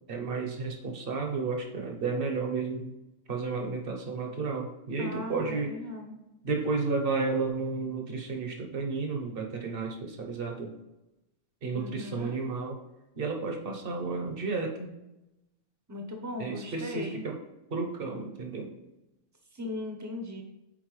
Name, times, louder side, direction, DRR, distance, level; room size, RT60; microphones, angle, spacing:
voice 1, 0.1-2.9 3.3-5.7 6.4-10.7 11.6-12.8 13.2-14.9 16.4-17.4 17.7-18.7, right 4 dB, 50° right, 2 dB, 1.0 m, -32 dB
voice 2, 5.0-6.2 11.7-12.4 15.9-17.2 19.5-20.4, left 2 dB, 15° right, 2 dB, 0.7 m, -38 dB
7.4 x 4.5 x 3.2 m, 0.95 s
omnidirectional pair, 1.3 m